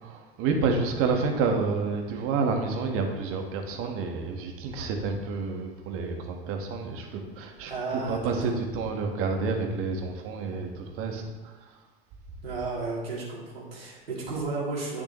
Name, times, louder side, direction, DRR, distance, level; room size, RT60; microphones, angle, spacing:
voice 1, 0.0-11.7, right 4 dB, 50° right, 3 dB, 1.5 m, -29 dB
voice 2, 7.7-8.5 12.4-15.0, right 3 dB, 80° right, -5 dB, 2.9 m, -33 dB
10.0 x 6.9 x 3.1 m, 1.2 s
figure-of-eight pair, 80°, 29 cm